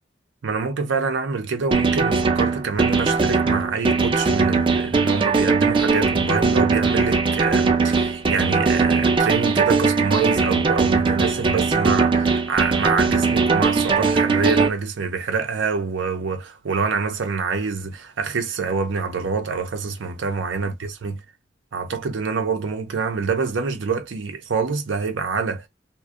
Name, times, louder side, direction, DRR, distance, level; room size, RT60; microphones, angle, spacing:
voice 1, 0.4-21.2 21.7-25.7, right 5 dB, 80° right, 0.5 m, -26 dB
sound 1, 1.7-14.7, right 4 dB, 25° right, 0.4 m, -20 dB
2.5 x 2.1 x 2.4 m
head